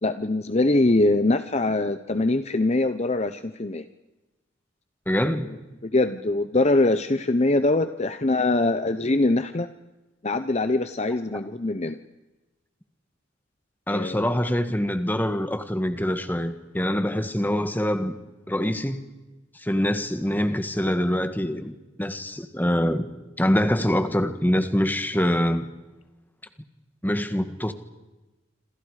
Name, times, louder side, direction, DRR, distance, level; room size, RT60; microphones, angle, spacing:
voice 1, 0.0-3.8 5.8-9.7 10.2-12.0 13.9-14.3, left 2 dB, 35° left, 11 dB, 0.8 m, -23 dB
voice 2, 5.0-5.5 11.3-11.4 13.9-18.2 18.5-19.0 19.5-23.0 23.4-25.7 27.0-27.7, equal, 10° left, 9 dB, 1.6 m, -24 dB
27.5 x 27.0 x 5.0 m, 1.1 s
head